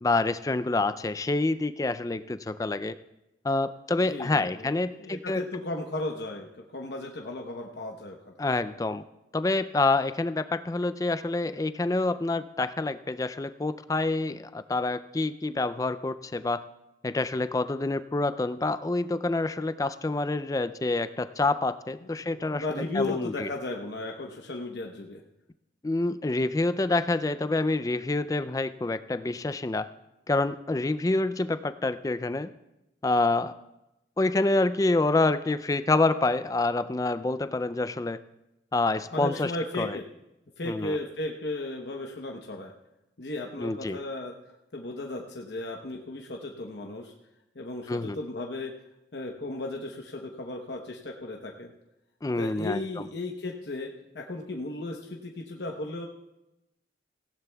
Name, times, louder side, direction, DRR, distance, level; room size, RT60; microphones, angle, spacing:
voice 1, 0.0-3.0 3.4-5.4 8.4-9.0 9.3-16.6 17.0-22.6 22.9-23.5 25.8-29.9 30.3-32.5 33.0-33.5 34.2-38.2 38.7-39.5 39.8-40.0 40.6-41.0 43.6-44.0 47.9-48.2 52.2-52.8, left 2 dB, 20° left, 13 dB, 0.3 m, -27 dB
voice 2, 4.0-6.5 6.7-8.3 22.2-25.2 39.1-40.0 40.6-42.7 43.2-44.3 44.7-47.1 47.5-48.7 49.1-51.7 52.4-56.1, left 2 dB, 65° left, 1 dB, 0.9 m, -35 dB
17.5 x 16.0 x 2.3 m, 0.94 s
head